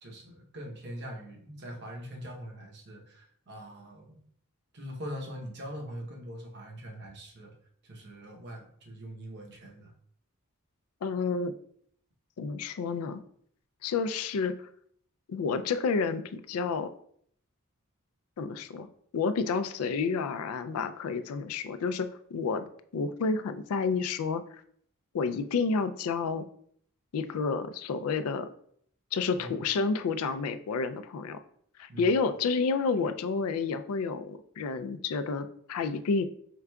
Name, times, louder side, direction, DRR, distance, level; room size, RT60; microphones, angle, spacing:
voice 1, 0.0-4.2 4.7-7.5 7.8-9.9 29.4-29.5 31.9-32.2, equal, 50° right, 1 dB, 0.8 m, -42 dB
voice 2, 11.0-11.5 12.4-13.2 13.8-14.7 15.3-16.9 18.4-18.9 19.1-22.6 22.9-24.4 25.1-26.4 27.1-28.5 29.1-31.4 31.8-36.2, left 4 dB, 80° left, 10 dB, 0.4 m, -30 dB
4.7 x 3.5 x 2.2 m, 0.63 s
head